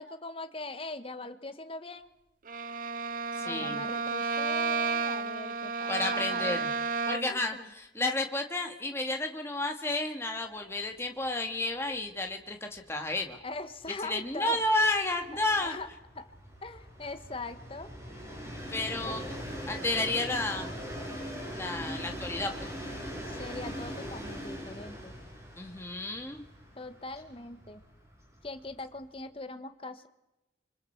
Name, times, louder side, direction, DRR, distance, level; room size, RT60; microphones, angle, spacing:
voice 1, 0.0-2.1 3.4-6.7 7.3-7.7 13.4-14.6 15.3-15.9 16.1-16.3 16.6-17.9 19.0-19.3 23.3-25.1 26.8-27.8 28.4-30.1, left 2 dB, 30° left, 10 dB, 1.3 m, -41 dB
Bowed string instrument, 2.5-7.5, right 4 dB, 45° right, 0.7 m, -32 dB
voice 2, 3.3-3.8 5.9-6.7 7.1-13.4 14.0-15.7 18.7-19.2 19.7-20.7 21.5-22.7 25.6-26.4, left 2 dB, 15° left, 3 dB, 1.8 m, -31 dB
Train, 10.8-10.9 11.3-11.4 11.6-29.0, equal, 15° right, 8.0 m, -42 dB
28.0 x 25.5 x 4.6 m, 0.96 s
head